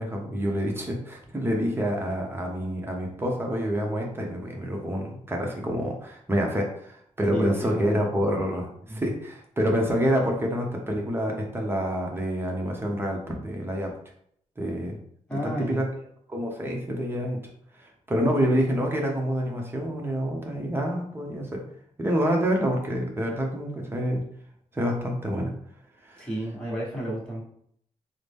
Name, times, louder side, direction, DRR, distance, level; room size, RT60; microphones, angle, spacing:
voice 1, 0.0-13.9 14.6-15.0 15.4-15.9 16.3-17.4 17.8-21.7 22.0-24.2 24.7-25.5 26.1-26.3, equal, 20° right, 0 dB, 0.9 m, -27 dB
voice 2, 7.3-8.0 8.9-9.0 15.3-15.9 26.2-27.4, equal, 5° left, -5 dB, 1.4 m, -31 dB
3.8 x 2.1 x 3.4 m, 0.68 s
cardioid pair, 90°, 13 cm